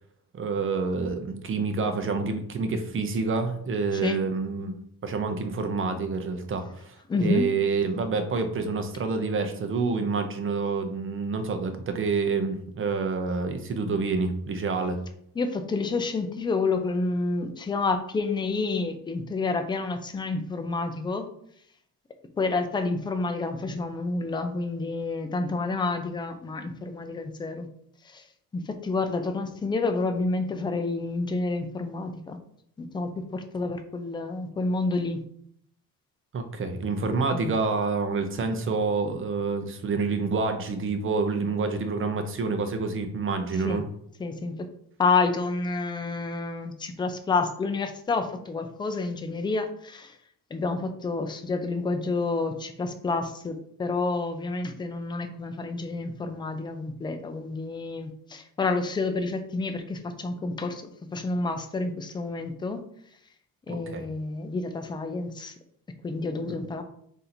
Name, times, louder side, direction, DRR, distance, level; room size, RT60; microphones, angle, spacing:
voice 1, 0.3-4.7 5.0-15.0 36.3-43.8 63.7-64.1 66.4-66.6, right 4 dB, 35° right, 7 dB, 0.6 m, -28 dB
voice 2, 7.1-7.5 15.4-21.3 22.4-27.7 28.1-28.2 28.5-32.4 32.8-35.2 37.3-37.5 43.6-43.8 44.2-44.7 45.0-50.2 50.5-60.8 61.1-62.8 63.7-65.5 66.0-66.8, left 3 dB, 15° left, 8 dB, 0.3 m, -29 dB
3.8 x 2.7 x 4.2 m, 0.69 s
cardioid pair, 120°, 37 cm